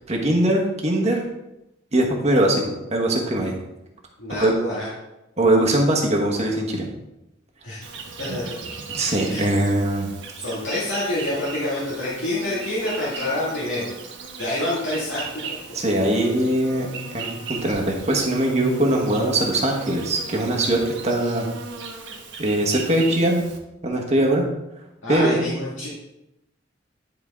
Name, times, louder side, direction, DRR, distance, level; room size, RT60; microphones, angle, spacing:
voice 1, 0.1-1.2 1.9-3.5 4.3-4.5 5.4-6.9 8.9-10.1 15.7-21.5 22.4-23.4 23.8-24.5 25.1-25.5, right 1 dB, 35° right, 0 dB, 1.2 m, -21 dB
voice 2, 4.2-4.9 7.6-7.9 8.2-8.6 9.3-9.4 10.4-13.9 14.4-15.6 25.0-25.9, left 1 dB, 80° left, -8 dB, 1.9 m, -27 dB
Insect, 7.8-23.6, right 4 dB, 65° right, 1.2 m, -37 dB
11.0 x 4.5 x 3.6 m, 0.92 s
head